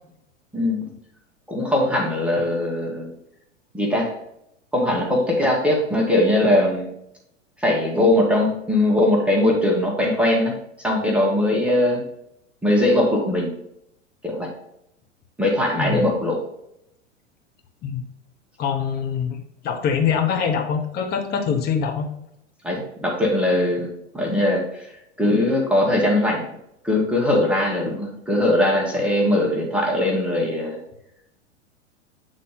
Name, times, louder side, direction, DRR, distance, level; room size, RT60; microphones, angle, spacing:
voice 1, 0.5-0.9 1.5-3.1 3.7-4.1 4.7-6.9 7.6-12.0 12.6-13.6 14.2-14.5 15.4-16.4 22.6-24.9 25.2-26.5 26.8-30.8, left 1 dB, 5° right, -2 dB, 1.3 m, -20 dB
voice 2, 18.6-22.1, left 7 dB, 25° left, 4 dB, 1.1 m, -24 dB
8.2 x 3.9 x 3.8 m, 0.78 s
figure-of-eight pair, 90°, 37 cm